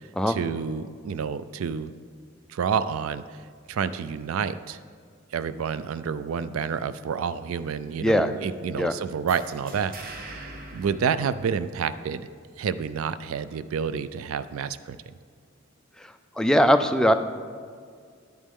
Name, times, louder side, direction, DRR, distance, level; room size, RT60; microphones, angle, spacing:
voice 1, 0.3-1.9 2.5-3.2 3.7-4.8 5.3-12.2 12.6-15.0, right 6 dB, 75° right, 14 dB, 0.4 m, -29 dB
voice 2, 8.0-8.3 8.8-8.9 16.4-17.1, equal, 5° left, 7 dB, 0.3 m, -20 dB
sound 1, 9.3-12.0, right 2 dB, 45° right, 0.9 m, -43 dB
10.5 x 8.3 x 3.7 m, 2.1 s
head